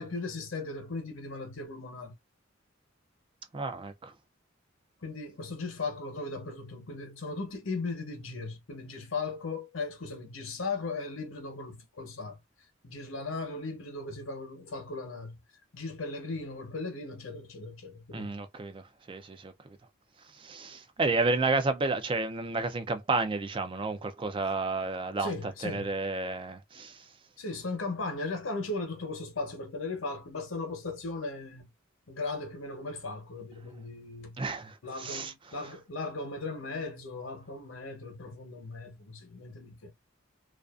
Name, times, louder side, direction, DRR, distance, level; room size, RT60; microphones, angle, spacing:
voice 1, 0.0-2.1 5.0-12.4 12.8-15.4 15.7-18.3 25.2-26.0 27.4-31.7 32.1-34.4 34.8-39.9, left 3 dB, 75° left, 0.9 m, -37 dB
voice 2, 3.5-4.1 18.1-19.8 20.3-27.1 34.4-35.3 35.6-35.7, right 3 dB, 25° right, 0.4 m, -31 dB
2.4 x 2.4 x 2.3 m
head